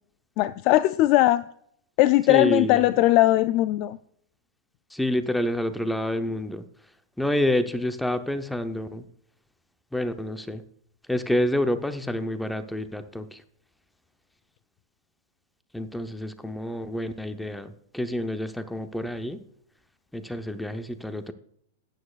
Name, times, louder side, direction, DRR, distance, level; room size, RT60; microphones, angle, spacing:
voice 1, 0.4-1.4 2.0-4.0, left 16 dB, 45° left, 14 dB, 0.3 m, -19 dB
voice 2, 2.3-2.9 4.9-6.6 7.2-9.0 9.9-10.6 11.1-13.4 15.7-19.4 20.1-21.3, left 1 dB, 5° left, 9 dB, 0.7 m, -28 dB
12.5 x 9.0 x 2.4 m, 0.68 s
hypercardioid pair, 125°, 0 cm